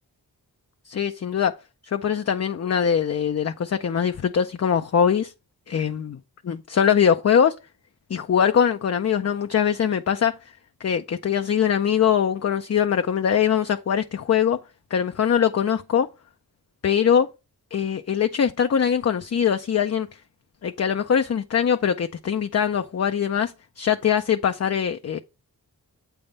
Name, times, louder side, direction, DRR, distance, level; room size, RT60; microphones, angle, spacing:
voice 1, 0.9-1.5 1.8-5.3 5.7-6.2 6.4-7.5 8.1-10.4 10.8-14.6 14.9-16.1 16.8-17.3 17.7-20.1 20.6-25.2, left 8 dB, 45° left, 0.5 m, -22 dB
7.9 x 3.5 x 5.3 m
wide cardioid pair, 70°, 38 cm